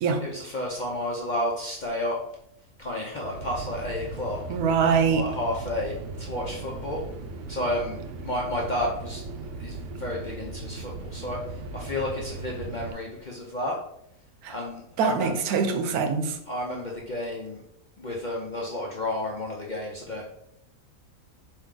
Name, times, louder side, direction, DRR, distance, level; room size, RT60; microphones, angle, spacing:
voice 1, 0.2-2.2 2.8-4.4 5.1-7.0 7.5-8.0 8.2-9.2 9.6-13.8 14.5-15.3 16.5-17.6 18.0-20.2, left 1 dB, 50° left, -2 dB, 0.5 m, -31 dB
sound 1, 3.1-12.9, right 3 dB, 65° right, 0.8 m, -38 dB
voice 2, 4.5-5.2 14.4-14.5 15.0-16.4, right 5 dB, 85° right, 6 dB, 1.1 m, -23 dB
4.5 x 3.0 x 3.6 m, 0.77 s
omnidirectional pair, 1.5 m